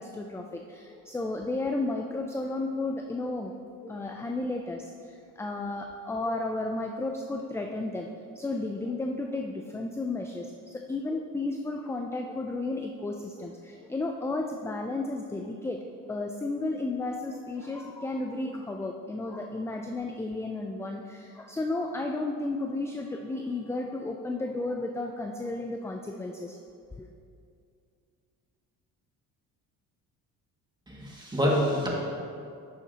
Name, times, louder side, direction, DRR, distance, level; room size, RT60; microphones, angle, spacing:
voice 1, 0.0-3.5 3.8-8.1 8.4-26.6 27.0-27.1, left 2 dB, 10° left, 3 dB, 0.3 m, -33 dB
voice 2, 30.9-31.9, equal, 10° right, -4 dB, 2.0 m, -26 dB
10.5 x 6.8 x 2.9 m, 2.4 s
cardioid pair, 100°, 35 cm